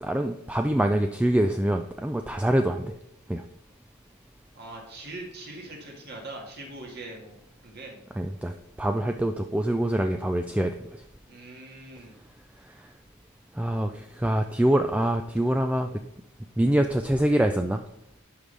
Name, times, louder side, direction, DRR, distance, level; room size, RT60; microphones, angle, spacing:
voice 1, 0.0-2.9 3.3-3.4 8.1-11.0 12.6-12.9 13.5-15.9 16.6-17.8, right 1 dB, 5° right, 6 dB, 0.3 m, -25 dB
voice 2, 4.6-7.4 7.6-8.0 11.3-12.1, right 2 dB, 50° right, 0 dB, 1.9 m, -41 dB
11.0 x 5.3 x 3.4 m, 0.82 s
head